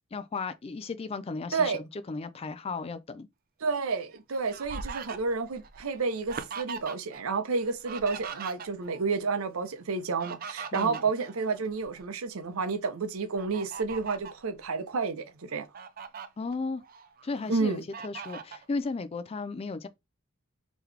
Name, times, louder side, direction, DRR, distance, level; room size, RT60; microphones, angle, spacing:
voice 1, 0.1-3.3 10.7-11.0 16.4-16.8 17.2-19.9, left 4 dB, 30° left, 0.3 m, -35 dB
voice 2, 3.6-15.7 17.5-17.8, right 4 dB, 80° right, 0.7 m, -30 dB
Fowl, 3.9-7.2 7.5-9.0 9.9-12.0 12.5-12.7 13.3-14.4 15.0-15.1 15.5-16.3 16.8-17.5 17.9-18.6, right 6 dB, 40° right, 0.4 m, -41 dB
3.7 x 3.0 x 3.3 m
head